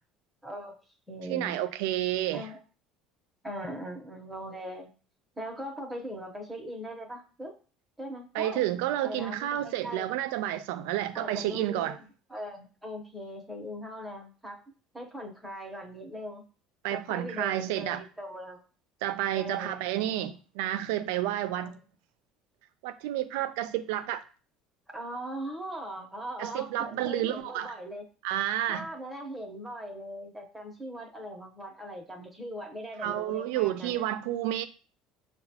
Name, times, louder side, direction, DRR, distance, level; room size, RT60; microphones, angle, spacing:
voice 1, 0.4-0.8 1.1-1.6 2.3-2.6 3.4-4.9 5.4-7.5 8.0-10.1 11.1-12.0 12.3-14.6 14.9-16.4 16.9-18.6 19.3-19.8 21.5-21.8 24.9-28.0 28.7-34.0, equal, 5° right, 0.8 m, -40 dB
voice 2, 1.3-2.5 8.3-12.0 16.8-18.0 19.0-21.7 22.8-24.2 26.4-27.7 28.2-28.9 33.0-34.7, right 13 dB, 90° right, 0.4 m, -30 dB
6.7 x 2.2 x 2.8 m
cardioid pair, 140°, 0 cm